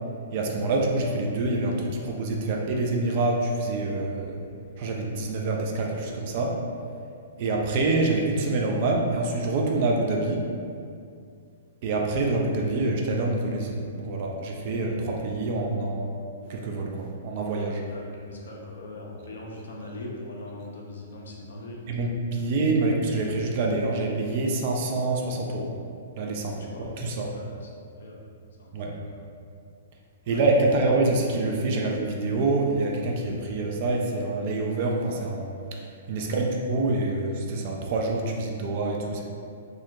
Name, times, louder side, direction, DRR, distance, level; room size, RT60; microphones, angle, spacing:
voice 1, 0.3-4.4 4.8-6.6 7.4-10.5 11.8-16.2 16.5-17.8 21.9-25.7 26.2-26.6 27.0-27.3 28.7-28.9 30.3-35.8 36.1-39.2, right 2 dB, 40° right, 0 dB, 0.3 m, -26 dB
voice 2, 17.8-21.8 26.4-27.7 28.0-28.3 28.6-29.2 30.2-30.4 36.1-36.5, left 1 dB, 60° left, -2 dB, 0.4 m, -41 dB
2.4 x 2.0 x 2.7 m, 2.3 s
figure-of-eight pair, 110°, 0 cm